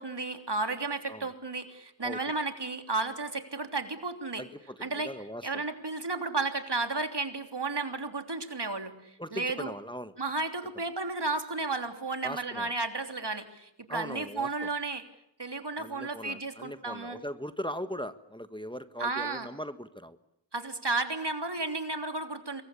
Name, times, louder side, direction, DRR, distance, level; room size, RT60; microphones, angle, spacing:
voice 1, 0.0-4.4 4.8-5.1 5.4-9.7 10.2-15.0 15.4-17.2 19.0-19.5 20.5-22.6, right 3 dB, 65° right, 8 dB, 3.3 m, -33 dB
voice 2, 4.4-5.6 9.2-10.1 12.2-12.7 13.9-14.7 15.7-20.2, equal, 10° left, 11 dB, 1.5 m, -39 dB
27.0 x 22.5 x 8.4 m, 0.78 s
wide cardioid pair, 45°, 44 cm